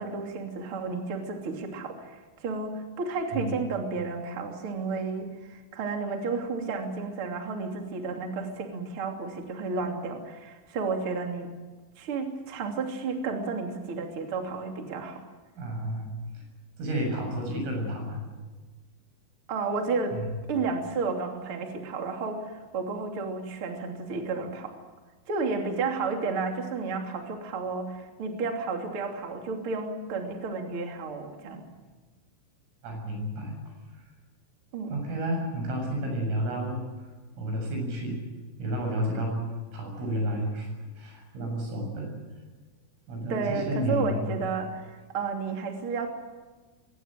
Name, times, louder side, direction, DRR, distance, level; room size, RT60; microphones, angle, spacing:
voice 1, 0.0-11.5 12.0-15.2 19.5-20.2 20.5-24.7 25.3-31.6 34.7-34.9 43.3-46.1, right 4 dB, 35° right, 3 dB, 2.8 m, -32 dB
voice 2, 15.6-16.1 16.3-16.4 16.8-18.2 20.1-20.3 32.8-33.5 34.9-36.8 37.4-38.3 38.6-40.7 41.0-42.1 43.1-44.2, equal, 85° right, 2 dB, 9.8 m, -31 dB
22.5 x 18.5 x 9.1 m, 1.3 s
omnidirectional pair, 5.7 m